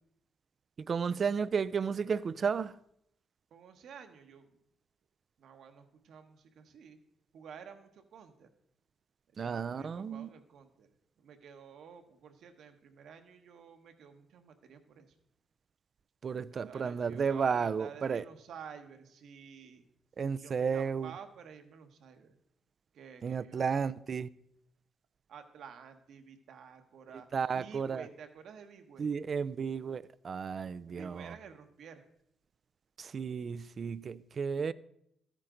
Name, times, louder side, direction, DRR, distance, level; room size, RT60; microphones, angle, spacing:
voice 1, 0.8-2.8 9.4-10.3 16.2-18.2 20.2-21.1 23.2-24.3 27.3-28.1 29.0-31.3 33.0-34.7, right 6 dB, 45° right, 0.4 m, -33 dB
voice 2, 3.5-4.6 5.4-7.0 7.3-8.5 9.4-10.9 11.2-15.1 16.5-19.8 20.4-22.4 22.9-23.7 25.3-27.3 27.5-29.1 30.9-32.1, right 7 dB, 70° right, 1.2 m, -51 dB
13.0 x 9.7 x 3.8 m
cardioid pair, 90°, 0 cm